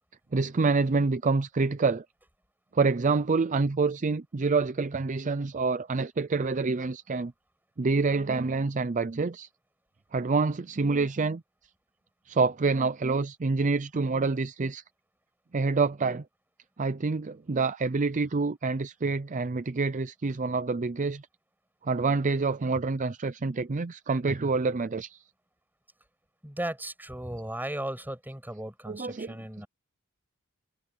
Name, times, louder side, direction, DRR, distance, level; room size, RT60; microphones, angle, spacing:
voice 1, 0.3-2.0 2.7-7.3 7.8-9.5 10.1-11.4 12.3-14.8 15.5-16.2 16.8-21.2 21.8-25.2 28.9-29.4, right 4 dB, 35° right, 0.5 m, -27 dB
voice 2, 26.4-29.7, right 1 dB, 10° right, 7.8 m, -36 dB
head